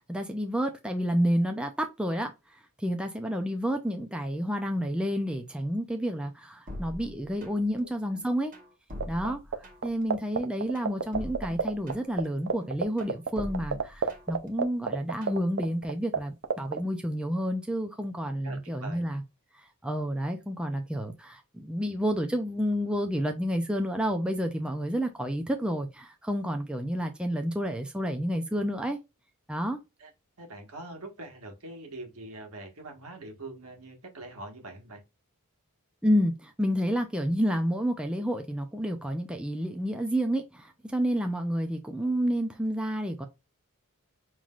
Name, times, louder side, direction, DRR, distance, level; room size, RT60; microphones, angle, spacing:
voice 1, 0.0-8.6 9.1-19.2 19.6-29.0 29.5-29.8 36.0-43.3, equal, 5° right, 0.5 m, -30 dB
sound 1, 6.7-7.8 8.1-10.0 10.4-12.3 12.6-14.5 14.8-15.4, left 1 dB, 40° right, 1.2 m, -43 dB
sound 2, 9.0-9.5 9.8-11.9 12.2-12.3 12.5-16.2 16.4-16.8, right 5 dB, 55° right, 0.6 m, -26 dB
voice 2, 18.4-19.0 30.0-30.1 30.4-35.0 42.0-42.1, right 2 dB, 70° right, 1.5 m, -43 dB
5.6 x 3.1 x 2.4 m
head